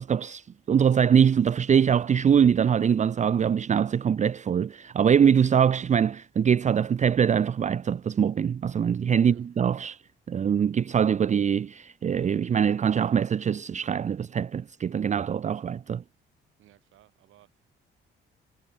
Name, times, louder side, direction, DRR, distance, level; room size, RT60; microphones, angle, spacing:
voice 1, 0.0-10.0 10.3-16.0, right 8 dB, 35° right, 0.6 m, -23 dB
voice 2, 16.6-17.7, right 14 dB, 85° right, 7.8 m, -59 dB
cardioid pair, 90°, 20 cm